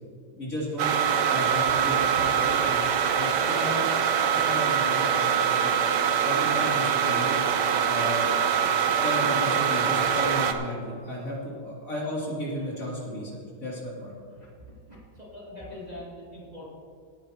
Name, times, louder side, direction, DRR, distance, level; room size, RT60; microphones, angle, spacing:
voice 1, 0.3-0.9 1.3-2.8 3.2-5.7 6.2-7.4 7.9-8.3 9.0-14.2, equal, 45° left, -6 dB, 3.4 m, -33 dB
sound 1, 0.8-10.5, right 8 dB, 65° right, 1.3 m, -24 dB
voice 2, 14.3-16.7, left 1 dB, 20° right, -8 dB, 2.9 m, -44 dB
18.5 x 10.5 x 3.0 m, 2.2 s
omnidirectional pair, 2.1 m